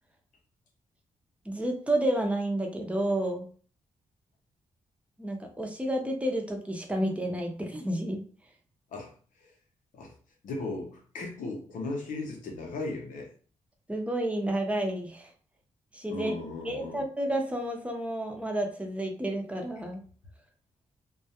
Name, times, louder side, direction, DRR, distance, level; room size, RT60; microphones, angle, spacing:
voice 1, 1.5-3.5 5.2-8.2 13.9-15.3 15.9-16.3 16.6-20.0, right 1 dB, 10° right, 2 dB, 0.7 m, -30 dB
voice 2, 10.4-13.3 16.1-17.0, left 2 dB, 85° left, 2 dB, 0.7 m, -36 dB
2.3 x 2.1 x 2.8 m, 0.41 s
cardioid pair, 60°, 13 cm